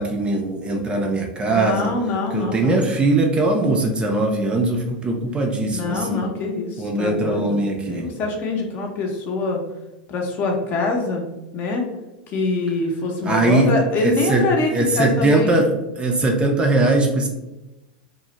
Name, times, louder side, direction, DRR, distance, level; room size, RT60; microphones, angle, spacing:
voice 1, 0.0-1.9 2.3-6.2 6.8-8.1 13.2-13.7 14.0-14.4 14.7-15.7 16.0-17.3, right 2 dB, 20° right, 3 dB, 0.4 m, -20 dB
voice 2, 1.5-2.9 5.7-7.6 7.9-9.6 10.1-11.2 11.5-11.9 12.3-15.5, left 3 dB, 40° left, 1 dB, 0.6 m, -24 dB
2.3 x 2.0 x 2.9 m, 0.98 s
hypercardioid pair, 95°, 5 cm